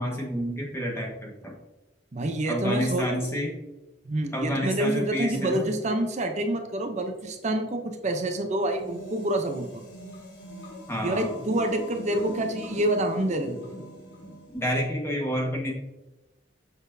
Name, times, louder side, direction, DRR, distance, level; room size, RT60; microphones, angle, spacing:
voice 1, 0.0-1.5 2.5-3.5 4.3-5.7 10.9-11.3 14.5-15.7, equal, 15° left, -1 dB, 1.4 m, -29 dB
voice 2, 2.1-3.1 4.0-9.8 11.0-13.7, right 1 dB, 40° right, 5 dB, 0.6 m, -27 dB
sound 1, 8.6-14.9, equal, 70° left, 1.9 m, -42 dB
7.1 x 6.0 x 2.7 m, 1.0 s
head